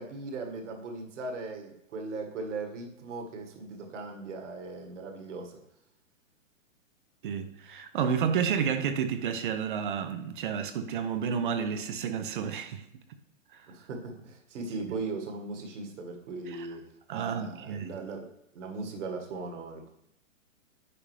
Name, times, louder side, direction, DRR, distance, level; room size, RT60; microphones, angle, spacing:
voice 1, 0.0-5.6 13.7-19.9, right 3 dB, 65° right, 1.8 m, -38 dB
voice 2, 7.2-12.8 13.5-13.7 16.5-16.7 17.1-17.9, right 7 dB, 40° right, 0.6 m, -31 dB
10.0 x 5.2 x 3.3 m
hypercardioid pair, 140°, 40 cm